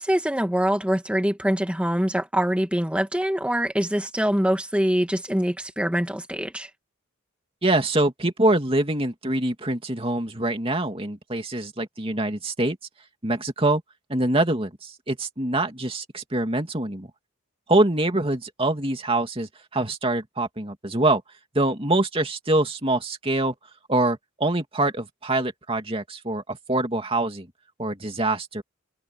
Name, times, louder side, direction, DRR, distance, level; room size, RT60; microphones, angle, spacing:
voice 1, 0.0-6.7, equal, 5° right, 2.1 m, -24 dB
voice 2, 7.6-12.8 13.2-13.8 14.1-17.1 17.7-21.2 21.5-23.5 23.9-27.5 27.8-28.6, right 2 dB, 25° right, 2.7 m, -24 dB
head